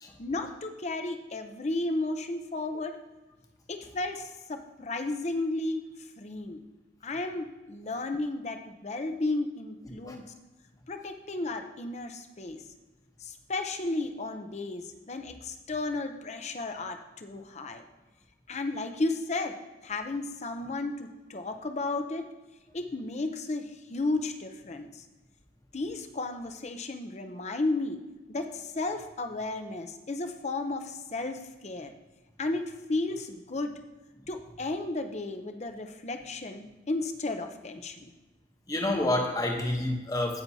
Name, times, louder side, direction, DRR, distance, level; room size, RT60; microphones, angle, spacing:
voice 1, 0.2-3.0 3.7-5.9 6.2-6.6 7.0-10.3 10.9-12.6 13.2-17.9 18.5-19.6 19.8-22.3 22.7-25.0 25.7-28.0 28.3-31.9 32.4-33.8 34.3-38.1, left 2 dB, 35° left, 6 dB, 0.6 m, -33 dB
voice 2, 38.7-40.4, left 1 dB, 20° left, 2 dB, 1.0 m, -28 dB
16.0 x 5.9 x 2.8 m, 1.1 s
head